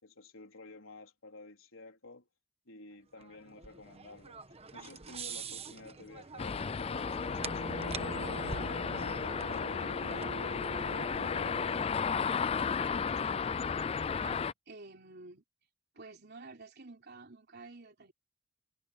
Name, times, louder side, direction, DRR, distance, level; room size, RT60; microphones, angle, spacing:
voice 1, 0.0-2.3 2.7-4.4 4.7-8.1 12.9-13.5, left 2 dB, 75° left, 3.9 m, -52 dB
sound 1, 3.2-11.7, right 5 dB, 30° right, 1.2 m, -47 dB
sound 2, 6.4-14.5, left 6 dB, 25° left, 0.3 m, -34 dB
Bowed string instrument, 7.4-12.2, right 2 dB, 90° right, 1.2 m, -44 dB
voice 2, 14.2-15.4 15.9-18.1, right 3 dB, 50° right, 3.6 m, -50 dB
head